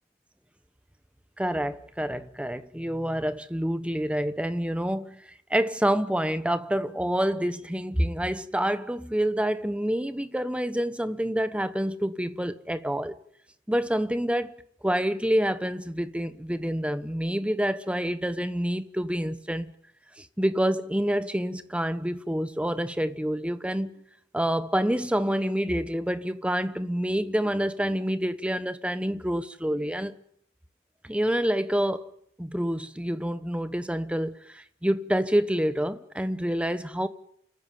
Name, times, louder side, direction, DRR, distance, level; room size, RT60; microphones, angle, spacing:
voice 1, 1.4-5.2 5.5-13.2 13.7-14.5 14.8-19.7 20.2-23.9 24.3-30.1 31.0-32.1 32.4-37.1, equal, 5° right, 1.1 m, -27 dB
28.5 x 14.0 x 9.4 m
head